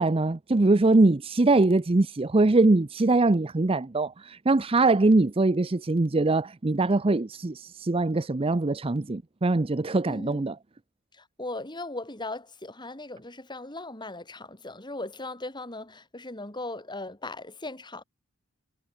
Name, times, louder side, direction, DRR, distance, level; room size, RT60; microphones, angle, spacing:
voice 1, 0.0-10.5, right 2 dB, 25° right, 0.6 m, -22 dB
voice 2, 10.1-10.5 11.1-18.0, left 2 dB, 20° left, 4.4 m, -38 dB
head